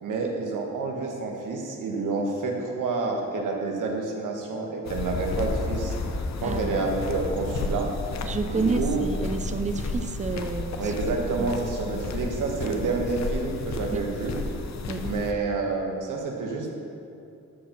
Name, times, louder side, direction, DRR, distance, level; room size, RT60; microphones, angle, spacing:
voice 1, 0.0-5.9 6.4-7.9 8.4-9.0 10.8-14.4 15.0-16.9, right 3 dB, 85° right, 1 dB, 1.6 m, -29 dB
sound 1, 4.9-15.3, left 3 dB, 60° left, 0.8 m, -32 dB
voice 2, 6.4-6.8 8.2-10.9 11.4-11.5 12.2-12.3 13.9-14.0 14.9-15.1, right 4 dB, 25° right, 9 dB, 0.6 m, -30 dB
13.0 x 4.6 x 6.0 m, 2.6 s
cardioid pair, 85°, 31 cm